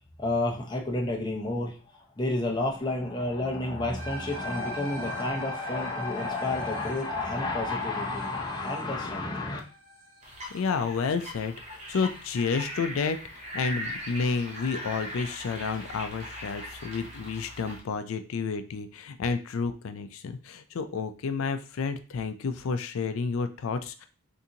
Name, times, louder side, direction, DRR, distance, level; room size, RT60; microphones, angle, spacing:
voice 1, 0.2-1.8 2.2-9.6, left 2 dB, 20° left, -1 dB, 0.6 m, -30 dB
sound 1, 4.0-12.4, right 1 dB, 75° right, 0.9 m, -44 dB
sound 2, 10.2-17.8, equal, 30° right, 0.6 m, -40 dB
voice 2, 10.5-24.1, left 5 dB, 70° left, 10 dB, 0.4 m, -30 dB
3.8 x 2.6 x 2.8 m, 0.35 s
head